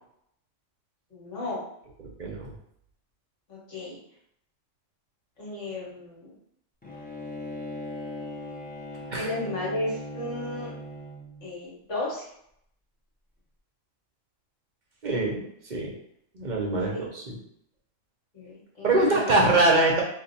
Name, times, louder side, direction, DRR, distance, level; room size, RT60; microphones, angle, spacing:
voice 1, 1.1-1.6 3.5-4.0 5.4-6.3 9.1-10.7 11.4-12.2 16.9-17.0 18.3-19.4, left 2 dB, 70° left, -6 dB, 1.7 m, -34 dB
voice 2, 2.2-2.5 9.1-9.3 15.0-15.9 16.3-17.4 18.8-20.0, right 2 dB, 50° right, -1 dB, 0.6 m, -23 dB
Bowed string instrument, 6.8-11.5, left 1 dB, 15° left, 0.3 m, -39 dB
2.7 x 2.6 x 4.0 m, 0.72 s
omnidirectional pair, 1.3 m